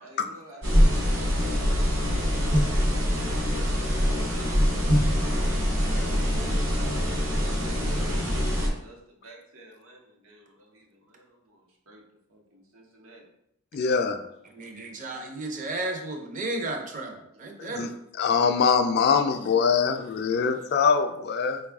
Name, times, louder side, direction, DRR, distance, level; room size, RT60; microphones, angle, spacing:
voice 1, 0.0-4.5 6.7-12.0 12.3-13.2, right 1 dB, 90° right, -1 dB, 1.0 m, -51 dB
sound 1, 0.6-8.7, equal, 65° right, 0.9 m, -24 dB
voice 2, 13.7-14.2 17.6-17.9 18.2-21.6, left 6 dB, 50° left, 8 dB, 0.3 m, -23 dB
voice 3, 14.5-17.9, right 2 dB, 40° right, 3 dB, 0.5 m, -33 dB
4.6 x 2.3 x 3.4 m, 0.77 s
head